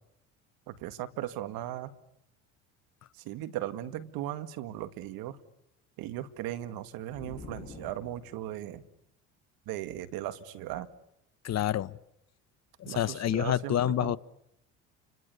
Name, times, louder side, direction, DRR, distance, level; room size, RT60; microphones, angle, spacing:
voice 1, 0.7-1.9 3.1-5.4 6.0-8.8 9.7-10.9 12.8-14.2, right 13 dB, 65° right, 2.1 m, -37 dB
sound 1, 7.1-8.7, left 3 dB, 20° left, 7.6 m, -47 dB
voice 2, 11.4-12.0 12.8-14.2, left 11 dB, 45° left, 1.1 m, -28 dB
29.5 x 25.5 x 6.9 m
hypercardioid pair, 75°, 38 cm